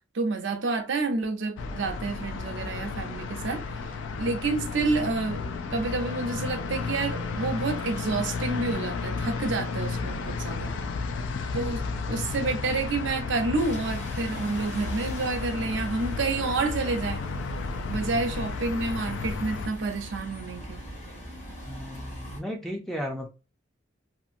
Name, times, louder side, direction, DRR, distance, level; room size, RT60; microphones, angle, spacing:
voice 1, 0.1-3.6 4.2-10.8 11.5-17.2 17.9-20.8, right 3 dB, 80° right, 0.6 m, -29 dB
sound 1, 1.6-19.7, left 4 dB, 80° left, 0.3 m, -33 dB
Bus, 13.5-22.4, equal, 40° left, 1.0 m, -41 dB
voice 2, 21.7-23.3, equal, ahead, 0.4 m, -35 dB
2.8 x 2.5 x 2.4 m
head